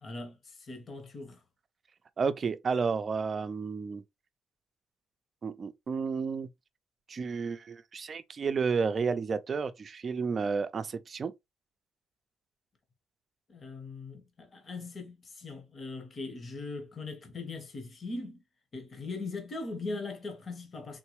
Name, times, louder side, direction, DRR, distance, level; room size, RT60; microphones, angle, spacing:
voice 1, 0.0-1.4 13.5-18.4 18.7-21.0, left 3 dB, 40° left, 1.1 m, -40 dB
voice 2, 2.2-4.0 5.4-6.5 7.1-11.3, right 5 dB, 45° right, 0.5 m, -31 dB
3.8 x 2.3 x 3.0 m
cardioid pair, 90°, 0 cm